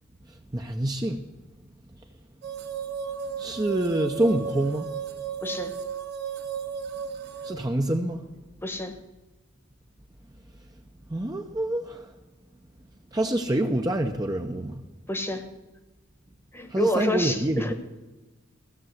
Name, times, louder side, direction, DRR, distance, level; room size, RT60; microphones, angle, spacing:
voice 1, 0.5-1.2 3.4-4.9 7.4-8.2 11.1-12.1 13.1-14.8 16.7-17.7, right 1 dB, 20° right, 3 dB, 0.6 m, -26 dB
sound 1, 2.4-7.5, right 7 dB, 50° right, 1.1 m, -34 dB
voice 2, 5.4-5.7 8.6-9.0 15.1-15.5 16.5-17.7, left 1 dB, 10° left, 8 dB, 1.0 m, -28 dB
15.0 x 6.8 x 7.7 m, 1.2 s
head